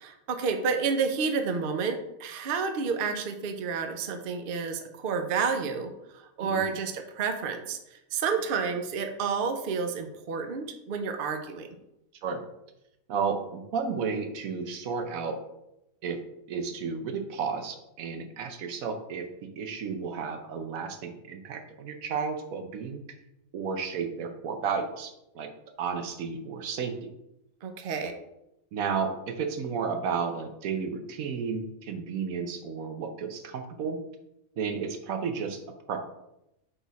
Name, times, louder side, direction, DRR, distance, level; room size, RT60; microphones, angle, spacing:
voice 1, 0.0-11.7 27.6-28.1, right 5 dB, 50° right, 6 dB, 0.7 m, -30 dB
voice 2, 6.4-6.8 12.2-12.4 13.1-15.4 16.0-16.2 16.5-23.0 23.5-25.5 25.8-27.1 28.7-34.0 34.6-35.6 35.9-36.0, right 5 dB, 90° right, 6 dB, 1.2 m, -32 dB
6.2 x 3.9 x 4.0 m, 0.85 s
omnidirectional pair, 1.4 m